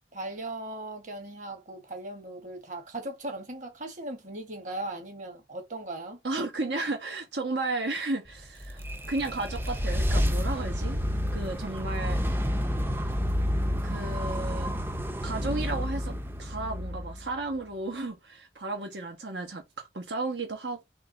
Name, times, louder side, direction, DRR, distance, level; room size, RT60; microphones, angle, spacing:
voice 1, 0.1-6.2, right 2 dB, 45° right, 1.5 m, -38 dB
voice 2, 6.2-11.0 11.3-12.2 13.0-13.1 13.8-14.7 15.2-20.8, right 2 dB, 80° right, 1.1 m, -33 dB
sound 1, 8.4-17.7, equal, 10° right, 0.5 m, -29 dB
3.6 x 3.3 x 3.9 m
head